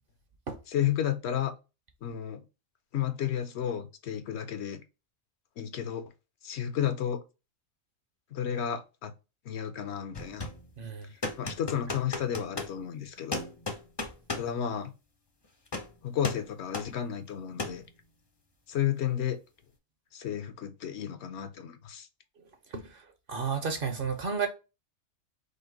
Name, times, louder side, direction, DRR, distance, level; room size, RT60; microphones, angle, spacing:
voice 1, 0.7-1.5 2.0-2.4 2.9-4.8 5.6-6.1 6.4-7.2 8.3-9.1 9.5-10.5 11.4-13.4 14.3-14.9 16.0-17.8 18.7-19.4 20.1-22.1, left 10 dB, 65° left, 0.8 m, -32 dB
sound 1, 10.1-10.7 11.2-12.8 13.3-14.5 15.7-15.9 16.2-16.5 16.7-16.9 17.6-17.8, left 2 dB, 30° left, 0.5 m, -35 dB
voice 2, 10.8-11.1 14.0-14.1 22.7-23.0 23.3-24.5, right 6 dB, 55° right, 0.8 m, -32 dB
5.1 x 2.1 x 3.7 m
omnidirectional pair, 1.3 m